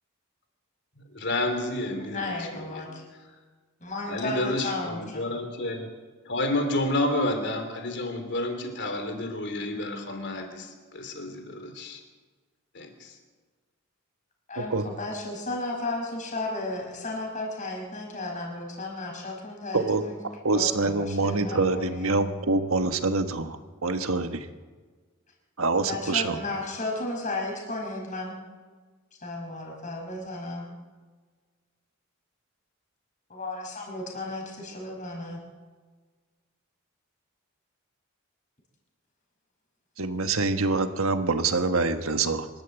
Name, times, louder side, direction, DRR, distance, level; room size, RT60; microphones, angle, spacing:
voice 1, 1.0-2.8 4.1-5.9 6.2-12.0 12.7-13.1, left 1 dB, 55° left, 5 dB, 3.3 m, -30 dB
voice 2, 2.1-3.0 3.8-5.2 14.5-20.2 20.5-22.2 25.9-28.4 29.2-30.7 33.3-35.4, left 2 dB, 35° left, 0 dB, 5.3 m, -34 dB
voice 3, 20.4-24.5 25.6-26.4 40.0-42.5, right 3 dB, 80° right, 8 dB, 1.4 m, -25 dB
25.0 x 12.5 x 8.2 m, 1.4 s
head